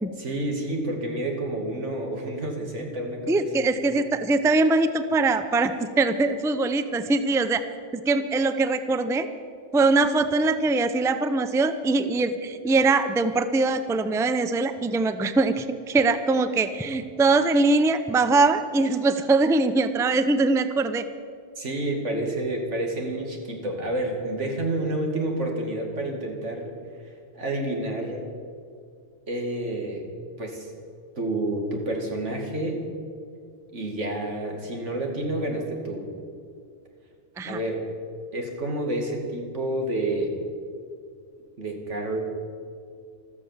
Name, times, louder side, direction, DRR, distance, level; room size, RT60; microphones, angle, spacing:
voice 1, 0.2-3.7 21.6-26.7 27.3-28.2 29.3-30.1 30.4-30.7 31.2-32.8 33.7-36.1 37.5-37.9 38.3-40.3 41.6-42.2, right 1 dB, 85° right, 2 dB, 2.6 m, -29 dB
voice 2, 3.3-7.6 7.9-9.3 9.7-21.0 37.4-37.6, right 3 dB, 5° right, 11 dB, 0.4 m, -22 dB
14.0 x 13.5 x 7.2 m, 2.3 s
omnidirectional pair, 1.2 m